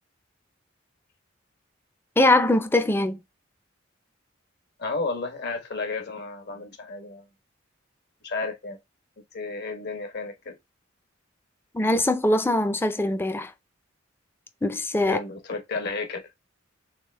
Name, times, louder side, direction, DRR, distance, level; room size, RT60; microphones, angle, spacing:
voice 1, 2.2-3.2 11.7-13.5 14.6-15.2, left 1 dB, 10° left, 0.4 m, -22 dB
voice 2, 4.8-7.2 8.2-8.8 9.3-10.5 15.0-16.3, left 3 dB, 55° left, 1.1 m, -32 dB
3.5 x 3.4 x 3.3 m
head